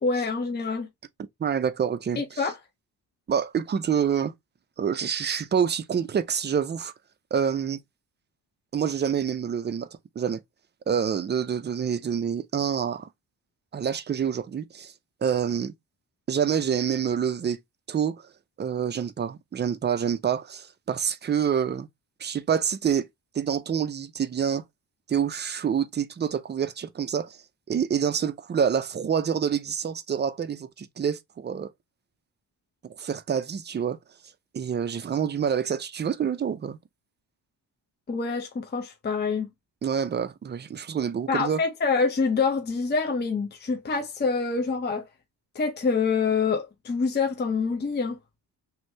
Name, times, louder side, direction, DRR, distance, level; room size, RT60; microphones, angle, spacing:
voice 1, 0.0-0.9 2.2-2.6 38.1-39.5 41.3-45.1 45.5-48.2, left 4 dB, 25° left, 0.6 m, -26 dB
voice 2, 1.4-2.2 3.3-4.3 4.8-6.9 7.3-7.8 8.7-9.9 10.2-10.4 10.9-13.1 13.7-14.9 15.2-15.7 16.3-17.6 17.9-18.3 18.6-21.9 22.2-23.1 23.3-24.6 25.1-27.4 27.7-31.7 32.8-34.0 34.5-36.8 39.8-41.6, right 7 dB, 25° right, 0.4 m, -27 dB
3.0 x 2.7 x 3.1 m
cardioid pair, 100°, 42 cm